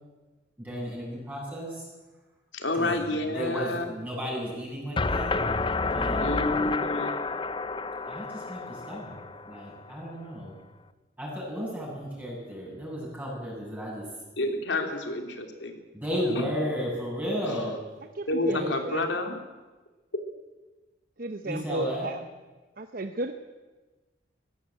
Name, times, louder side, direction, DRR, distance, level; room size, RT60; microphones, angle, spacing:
voice 1, 0.6-1.9 2.7-5.3 5.9-6.6 8.0-10.5 11.2-14.1 15.9-17.8 18.5-18.8 21.4-22.1, equal, 10° right, -4 dB, 7.6 m, -34 dB
voice 2, 2.5-3.9 6.2-7.2 14.4-15.7 17.4-17.6 18.3-19.4, left 2 dB, 75° left, 5 dB, 3.1 m, -29 dB
sound 1, 5.0-9.9, left 3 dB, 25° left, 0.7 m, -29 dB
voice 3, 18.1-19.3 21.2-22.2 22.8-23.3, right 2 dB, 50° right, 7 dB, 1.0 m, -34 dB
19.0 x 17.0 x 8.6 m, 1.2 s
head